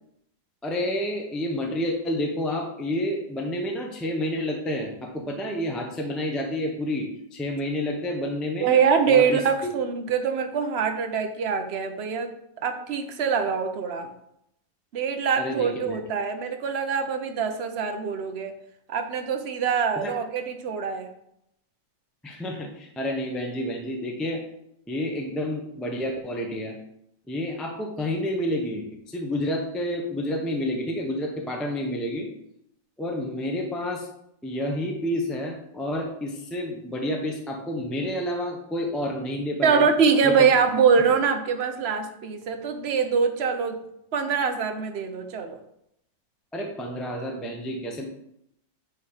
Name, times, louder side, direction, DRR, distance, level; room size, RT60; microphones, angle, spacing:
voice 1, 0.6-8.7 9.1-9.4 15.3-16.0 20.0-20.1 22.2-24.4 24.9-26.8 27.3-32.3 33.0-34.1 34.4-39.9 40.2-40.3 46.5-48.0, left 1 dB, ahead, 0 dB, 0.7 m, -29 dB
voice 2, 8.6-12.3 12.6-14.1 14.9-18.5 18.9-21.1 39.6-43.8 44.1-45.6, right 6 dB, 50° right, 6 dB, 0.8 m, -24 dB
9.2 x 3.3 x 5.6 m, 0.77 s
omnidirectional pair, 1.9 m